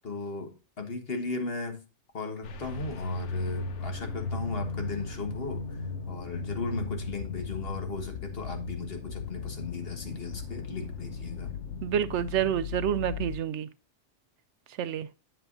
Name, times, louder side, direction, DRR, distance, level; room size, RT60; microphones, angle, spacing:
voice 1, 0.0-1.8 2.1-5.8 6.1-11.5, left 4 dB, 50° left, 1.7 m, -36 dB
sound 1, 2.4-13.4, left 3 dB, 70° left, 1.2 m, -36 dB
voice 2, 11.8-13.7 14.8-15.1, right 10 dB, 70° right, 0.8 m, -28 dB
7.9 x 7.8 x 2.6 m
omnidirectional pair, 1.3 m